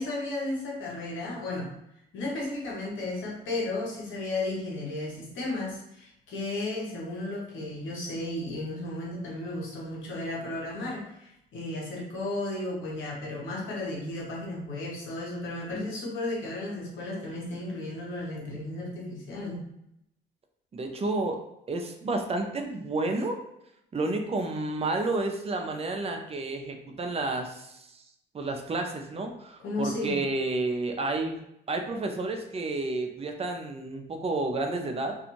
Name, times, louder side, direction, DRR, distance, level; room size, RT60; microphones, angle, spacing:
voice 1, 0.0-1.7 2.1-19.6 29.6-30.1, left 2 dB, 75° left, -3 dB, 1.0 m, -34 dB
voice 2, 20.7-21.4 21.7-23.4 23.9-28.0 28.3-31.4 31.7-35.2, right 2 dB, 30° right, 4 dB, 0.5 m, -30 dB
2.5 x 2.3 x 3.0 m, 0.80 s
cardioid pair, 90°, 20 cm